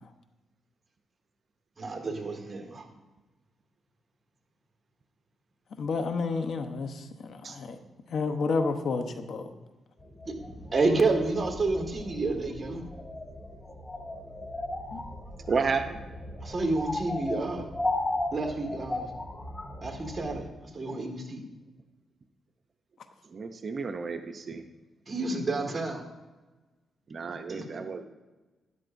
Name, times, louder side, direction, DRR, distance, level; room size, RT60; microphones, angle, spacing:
voice 1, 1.8-2.8 10.2-12.8 16.4-17.7 18.3-19.0 19.8-21.4 25.1-26.0 27.5-27.8, right 3 dB, 35° right, 3 dB, 1.8 m, -30 dB
voice 2, 5.8-7.8 8.1-9.4 14.9-15.0, left 4 dB, 65° left, 7 dB, 0.9 m, -30 dB
sound 1, 10.0-20.4, left 2 dB, 25° left, 1.6 m, -36 dB
voice 3, 15.5-16.0 23.3-24.6 27.1-28.0, right 5 dB, 50° right, 7 dB, 0.6 m, -31 dB
12.0 x 11.5 x 2.6 m, 1.2 s
cardioid pair, 80°, 0 cm